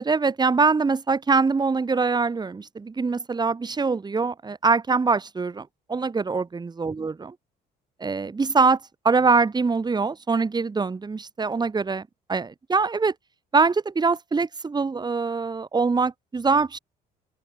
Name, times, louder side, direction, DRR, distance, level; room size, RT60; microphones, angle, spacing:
voice 1, 0.0-7.3 8.0-8.8 9.0-12.0 12.3-13.1 13.5-16.8, right 4 dB, 25° right, 8.0 m, -23 dB
open air
cardioid pair, 110°, 17 cm